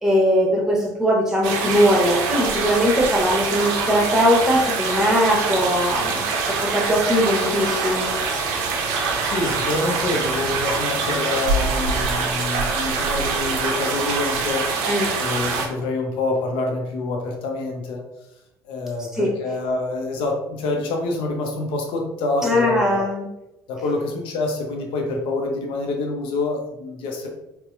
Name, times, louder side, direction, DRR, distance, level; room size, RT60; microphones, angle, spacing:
voice 1, 0.0-6.3 6.6-8.1 14.9-15.1 19.2-19.3 22.4-23.3, equal, 5° right, -1 dB, 1.0 m, -20 dB
sound 1, 1.4-15.7, right 4 dB, 65° right, 0.5 m, -24 dB
voice 2, 9.2-14.9 15.2-18.0 18.6-23.1 23.7-27.3, left 2 dB, 60° left, 2 dB, 0.6 m, -26 dB
4.1 x 2.1 x 2.4 m, 0.90 s
figure-of-eight pair, 50°, 10 cm